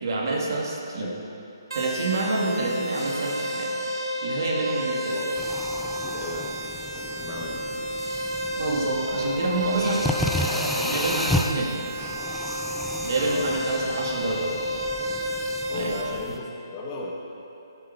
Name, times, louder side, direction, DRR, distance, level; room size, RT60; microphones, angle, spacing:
voice 1, 0.0-1.1 1.7-3.7 4.2-5.2 8.6-11.8 13.0-14.5 15.7-16.0, right 3 dB, 60° right, -2 dB, 2.2 m, -28 dB
sound 1, 1.7-16.0, equal, 90° right, 2.1 m, -31 dB
voice 2, 5.0-5.4 5.8-8.0 13.2-13.5 15.7-17.1, left 2 dB, 25° left, -3 dB, 1.5 m, -36 dB
sound 2, 5.4-16.4, left 1 dB, 5° left, 0.4 m, -33 dB
13.5 x 7.3 x 5.9 m, 2.8 s
hypercardioid pair, 155°, 2 cm